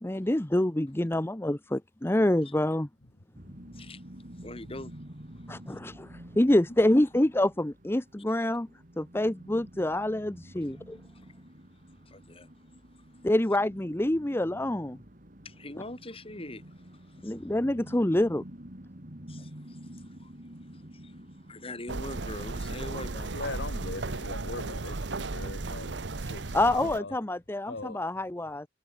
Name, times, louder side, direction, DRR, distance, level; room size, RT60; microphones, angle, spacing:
voice 1, 0.0-2.9 5.5-8.7 9.0-11.0 13.2-15.0 17.2-18.4 26.5-28.7, left 1 dB, 15° left, 0.8 m, -26 dB
sound 1, 3.3-23.2, equal, 50° right, 3.8 m, -49 dB
voice 2, 3.7-5.8 6.7-6.8 10.5-13.3 15.4-17.5 19.3-23.4, left 1 dB, 30° left, 7.9 m, -45 dB
sound 2, 21.9-27.0, right 3 dB, 85° right, 1.1 m, -35 dB
voice 3, 23.3-27.2 27.7-28.0, left 3 dB, 75° left, 2.0 m, -40 dB
head